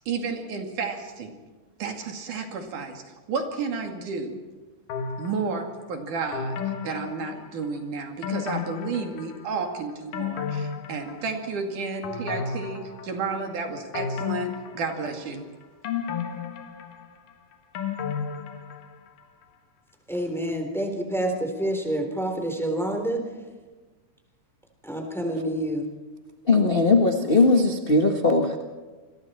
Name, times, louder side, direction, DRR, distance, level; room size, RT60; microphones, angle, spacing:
voice 1, 0.1-1.3 1.8-3.0 3.3-4.4 5.2-15.4, right 4 dB, 75° right, 3 dB, 3.9 m, -31 dB
sound 1, 4.9-5.7 6.3-7.8 8.2-9.6 9.9-11.6 12.0-13.4 13.9-15.4 15.8-19.1 19.4-19.5, left 6 dB, 80° left, 3.1 m, -33 dB
voice 2, 20.1-23.2 24.8-25.9, right 1 dB, ahead, 3 dB, 3.3 m, -28 dB
voice 3, 26.5-28.6, left 3 dB, 45° left, 2 dB, 0.7 m, -19 dB
28.5 x 22.5 x 4.4 m, 1.3 s
omnidirectional pair, 3.6 m